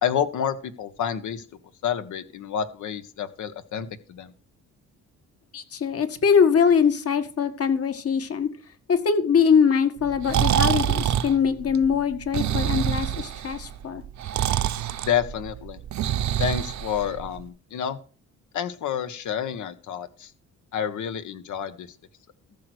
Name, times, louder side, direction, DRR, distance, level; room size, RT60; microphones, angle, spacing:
voice 1, 0.0-1.4 1.8-4.3 15.1-15.8 16.4-18.0 18.5-20.3 20.7-21.9, left 8 dB, 75° left, 10 dB, 1.6 m, -29 dB
voice 2, 5.5-8.5 8.9-14.0, left 6 dB, 50° left, 9 dB, 1.9 m, -22 dB
Breathing, 10.0-17.4, right 10 dB, 65° right, 1.0 m, -26 dB
14.0 x 6.7 x 6.3 m, 0.40 s
cardioid pair, 90°, 30 cm